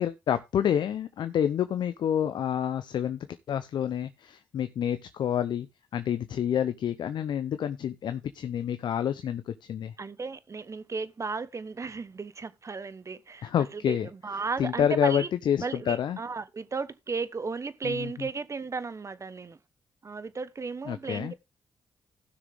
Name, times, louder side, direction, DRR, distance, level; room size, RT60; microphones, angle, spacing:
voice 1, 0.0-5.7 5.9-9.9 13.4-14.1 14.6-16.2 17.8-18.3 20.9-21.3, left 9 dB, 70° left, 0.7 m, -28 dB
voice 2, 10.0-14.0 14.2-15.3 15.6-19.6 20.0-21.3, right 4 dB, 40° right, 1.1 m, -34 dB
15.5 x 6.3 x 3.5 m
supercardioid pair, 55°, 8 cm